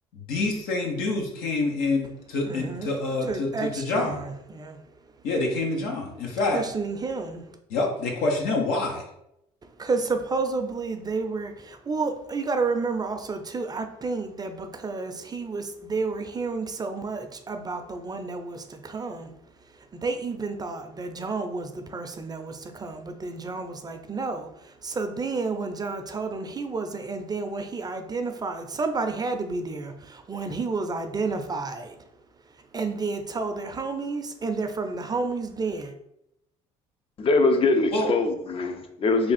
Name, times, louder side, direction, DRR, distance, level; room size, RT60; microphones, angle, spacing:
voice 1, 0.1-4.2 5.2-6.6 7.7-9.0 37.9-38.1, left 2 dB, 80° left, 1 dB, 0.9 m, -27 dB
voice 2, 2.4-2.9 3.2-4.9 6.5-7.5 9.6-19.3 19.7-32.0 32.7-35.9, right 4 dB, 25° right, 6 dB, 0.5 m, -31 dB
voice 3, 37.2-39.3, left 3 dB, 40° left, 7 dB, 0.6 m, -22 dB
3.4 x 2.4 x 4.1 m, 0.81 s
supercardioid pair, 75°, 15 cm